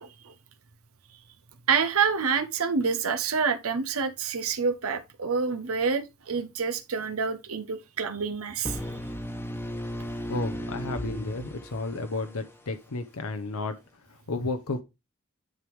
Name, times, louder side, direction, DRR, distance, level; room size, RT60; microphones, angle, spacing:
voice 1, 0.0-0.3 1.7-8.9, right 5 dB, 70° right, 0.8 m, -27 dB
sound 1, 8.6-12.5, equal, 10° left, 1.1 m, -35 dB
voice 2, 10.3-14.8, left 2 dB, 75° left, 0.9 m, -33 dB
10.0 x 3.6 x 4.7 m
head